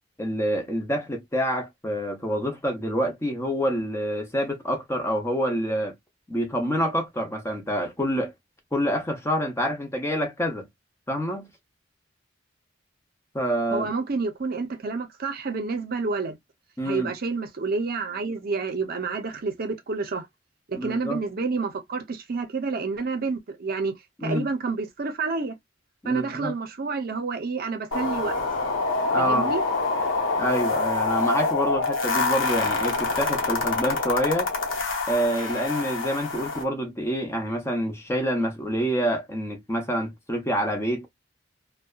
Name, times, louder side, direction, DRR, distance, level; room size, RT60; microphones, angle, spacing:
voice 1, 0.2-5.9 6.3-8.3 8.7-10.7 11.1-11.5 13.3-13.9 16.8-17.1 20.8-21.2 24.2-24.5 26.0-26.5 29.1-29.5 30.4-34.5 35.1-41.1, equal, 15° left, 0.6 m, -27 dB
voice 2, 13.7-16.4 16.8-20.3 20.7-25.5 26.0-28.4 29.2-29.6, right 4 dB, 50° right, 0.6 m, -29 dB
sound 1, 27.9-36.6, left 3 dB, 75° left, 0.8 m, -26 dB
2.6 x 2.2 x 2.3 m
head